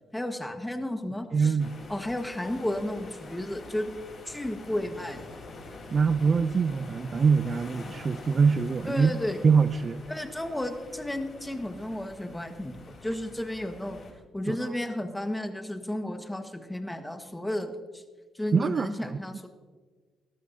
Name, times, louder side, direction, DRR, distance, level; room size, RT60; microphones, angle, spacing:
voice 1, 0.1-1.6 1.9-3.9 4.2-5.3 8.9-9.4 10.1-14.0 14.3-18.0 18.3-19.5, left 1 dB, 10° left, 6 dB, 1.4 m, -33 dB
voice 2, 1.3-1.8 5.9-9.1 9.4-10.0 14.5-14.6 18.5-19.2, right 5 dB, 40° right, 14 dB, 0.4 m, -24 dB
sound 1, 1.6-14.1, left 3 dB, 50° left, 3.6 m, -46 dB
19.5 x 13.0 x 2.7 m, 1.4 s
cardioid pair, 90°, 0 cm